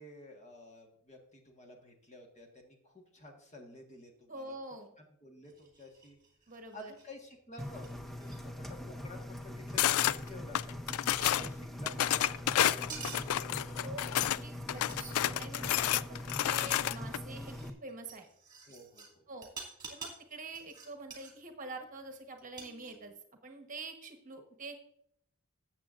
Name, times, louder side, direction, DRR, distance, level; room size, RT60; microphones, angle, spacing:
voice 1, 0.0-4.6 5.0-6.2 6.6-13.8 18.7-19.3, left 1 dB, 30° left, 2 dB, 1.4 m, -52 dB
voice 2, 4.3-4.9 6.5-6.9 13.8-14.0 14.4-18.3 19.3-19.5 19.9-23.1 23.4-24.7, right 2 dB, 35° right, 5 dB, 1.1 m, -46 dB
sound 1, 5.4-7.1 7.5-7.6 7.8-7.9 8.1-8.4 10.3-10.4 10.9-11.0 11.2-12.1 12.6-13.3 14.2-14.6 14.9-15.5 16.0-19.1 19.4-21.4 22.4-23.2, right 4 dB, 20° right, 2.2 m, -49 dB
Engine, 7.6-17.7, left 1 dB, ahead, 0.6 m, -43 dB
sound 2, 9.8-10.2 10.5-11.5 11.9-14.4 14.7-17.2, left 12 dB, 80° left, 0.3 m, -30 dB
14.0 x 7.7 x 2.5 m, 0.70 s
head